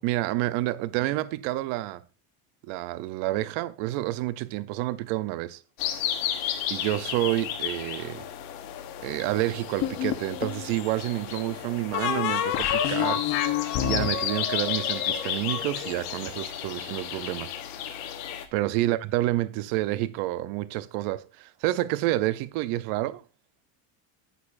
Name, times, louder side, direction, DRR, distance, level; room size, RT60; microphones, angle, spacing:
voice 1, 0.0-2.0 2.7-5.6 6.7-8.3 9.0-17.5 18.5-23.2, right 16 dB, 70° right, 0.7 m, -29 dB
sound 1, 5.8-18.4, left 10 dB, 70° left, 1.4 m, -33 dB
sound 2, 9.8-10.7 11.9-15.6, left 11 dB, 50° left, 1.0 m, -28 dB
Marimba xylophone, 13.6-16.4, left 5 dB, 20° left, 0.5 m, -38 dB
9.2 x 8.6 x 2.5 m
cardioid pair, 160°, 50 cm